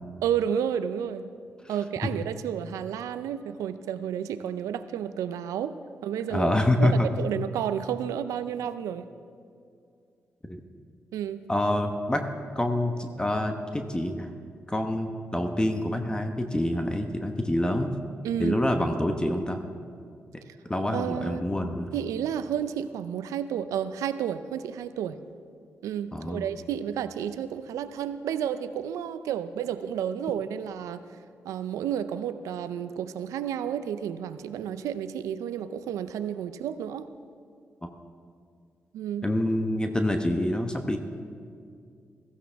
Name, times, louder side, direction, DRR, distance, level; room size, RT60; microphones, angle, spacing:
voice 1, 0.2-1.3 1.7-6.5 6.8-9.1 11.1-11.4 18.2-18.6 20.9-21.5 21.9-25.2 25.8-31.0 31.4-37.1 38.9-39.3, right 9 dB, 85° right, 12 dB, 0.5 m, -31 dB
voice 2, 6.3-7.1 10.5-10.6 11.5-12.2 12.5-14.3 14.7-18.0 18.4-19.6 20.7-21.9 26.1-26.5 37.8-37.9 39.2-41.0, left 1 dB, 15° left, 5 dB, 1.1 m, -26 dB
16.0 x 14.5 x 3.5 m, 2.3 s
supercardioid pair, 55°, 5 cm